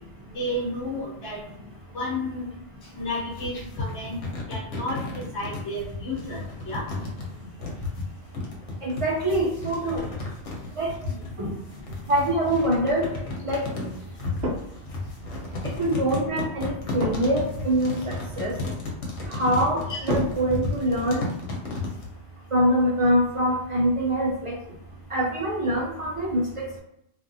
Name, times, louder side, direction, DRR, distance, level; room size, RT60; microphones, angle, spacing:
voice 1, 0.3-1.4 1.9-2.5 2.9-4.2 4.5-6.8, left 1 dB, 70° left, -5 dB, 1.1 m, -32 dB
sound 1, 3.0-22.1, left 3 dB, 90° left, 1.1 m, -33 dB
voice 2, 8.8-10.0 10.8-10.9 11.4-11.5 12.1-13.1 13.4-13.7 15.8-18.5 19.3-21.3 22.5-24.5 25.1-26.8, right 1 dB, 45° right, -3 dB, 0.4 m, -24 dB
sound 2, 14.4-15.0 17.0-17.5 20.1-21.2 24.7-25.0, right 1 dB, 65° right, 0.9 m, -32 dB
2.6 x 2.4 x 2.6 m, 0.82 s
omnidirectional pair, 1.2 m